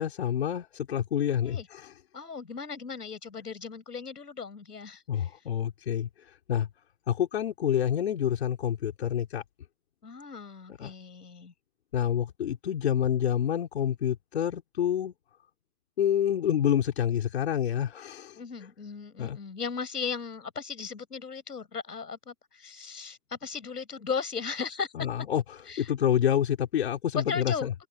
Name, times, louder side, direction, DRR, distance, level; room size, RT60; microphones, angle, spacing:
voice 1, 0.0-1.8 5.1-6.1 6.5-6.7 7.1-9.4 10.8-10.9 11.9-15.1 16.0-18.3 19.2-19.4 25.0-25.4 25.8-27.7, left 9 dB, 40° left, 4.3 m, -27 dB
voice 2, 2.1-5.3 10.0-11.5 18.4-24.9 25.7-25.9 27.1-27.7, left 5 dB, 80° left, 7.2 m, -37 dB
hypercardioid pair, 165°, 47 cm